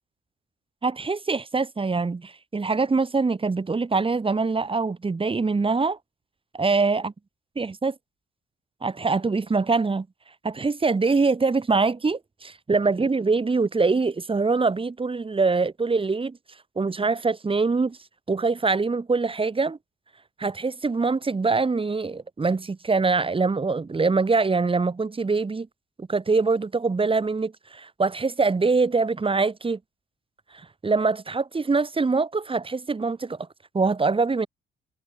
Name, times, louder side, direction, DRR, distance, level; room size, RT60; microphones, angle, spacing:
voice 1, 0.8-6.0 6.5-7.1 7.6-8.0 8.8-10.1 10.4-16.4 16.8-18.0 18.3-19.8 20.4-25.7 26.0-29.8 30.5-33.4 33.7-34.5, right 4 dB, 25° right, 4.3 m, -24 dB
cardioid pair, 90°, 20 cm